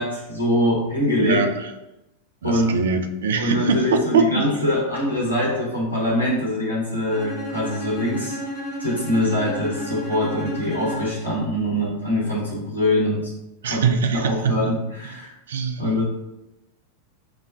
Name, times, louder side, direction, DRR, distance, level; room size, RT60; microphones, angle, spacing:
voice 1, 0.0-1.4 2.4-2.8 3.4-8.4 8.8-13.3 13.7-15.4 15.8-16.0, left 1 dB, 85° left, -5 dB, 1.1 m, -23 dB
voice 2, 1.2-1.7 2.4-4.5 13.6-14.8 15.5-16.0, right 5 dB, 65° right, 6 dB, 0.4 m, -23 dB
Bowed string instrument, 7.1-11.4, equal, 55° left, 0.9 m, -33 dB
5.8 x 2.2 x 2.3 m, 0.94 s
figure-of-eight pair, 90°, 0 cm